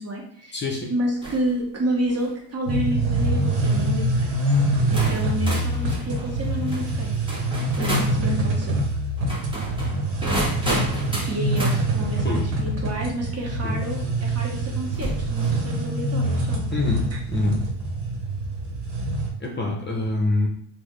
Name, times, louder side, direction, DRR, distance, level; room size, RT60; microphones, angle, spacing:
voice 1, 0.0-0.6 0.9-4.3 4.9-7.1 7.6-8.8 11.2-16.6 17.1-17.2, equal, 35° right, -1 dB, 0.9 m, -29 dB
voice 2, 0.5-0.9 12.2-12.4 13.6-13.7 16.7-17.0 17.3-17.6 19.4-20.5, left 2 dB, 25° left, -1 dB, 0.7 m, -25 dB
sound 1, 1.2-1.5 2.0-2.4 3.2-3.5 4.3-4.4 4.9-8.2 9.2-11.8 13.5-13.6 14.9-15.6, right 1 dB, 10° right, 1.0 m, -31 dB
sound 2, 2.7-19.3, right 1 dB, 65° right, 1.0 m, -25 dB
3.8 x 2.2 x 3.2 m, 0.66 s
cardioid pair, 105°, 46 cm